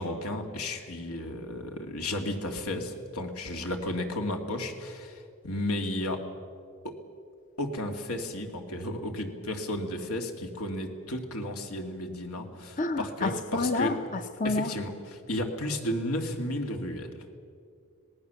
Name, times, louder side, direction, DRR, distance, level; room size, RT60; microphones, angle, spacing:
voice 1, 0.0-6.2 6.8-6.9 7.6-14.0 14.4-17.2, left 1 dB, 90° left, 3 dB, 2.6 m, -33 dB
voice 2, 12.8-14.7, left 3 dB, 35° left, 9 dB, 0.7 m, -29 dB
26.0 x 19.0 x 7.1 m, 2.3 s
head